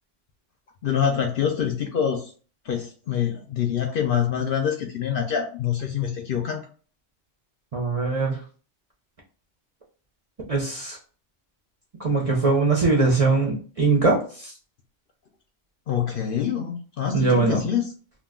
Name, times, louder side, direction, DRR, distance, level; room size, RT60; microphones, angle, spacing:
voice 1, 0.8-2.3 2.7-6.6 15.9-17.8, left 8 dB, 60° left, 3 dB, 0.6 m, -25 dB
voice 2, 7.7-8.4 10.5-11.0 12.0-14.5 17.1-17.6, right 3 dB, 40° right, -2 dB, 0.6 m, -21 dB
2.4 x 2.3 x 3.5 m, 0.40 s
omnidirectional pair, 1.2 m